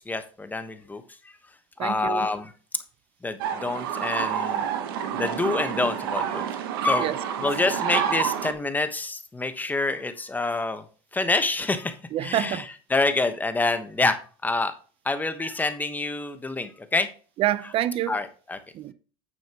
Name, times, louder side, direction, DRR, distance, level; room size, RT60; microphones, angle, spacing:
voice 1, 0.1-1.0 1.8-2.5 3.2-4.7 5.1-6.4 6.8-10.8 11.1-11.9 12.2-12.6 12.9-14.7 15.0-17.1 18.1-18.6, left 3 dB, 15° left, 1.1 m, -27 dB
voice 2, 1.8-2.3 7.0-7.2 12.1-12.7 17.4-18.2 18.7-18.9, right 13 dB, 50° right, 0.7 m, -27 dB
sound 1, 3.4-8.5, right 8 dB, 85° right, 1.1 m, -28 dB
9.1 x 7.1 x 2.9 m
supercardioid pair, 90°, 12 cm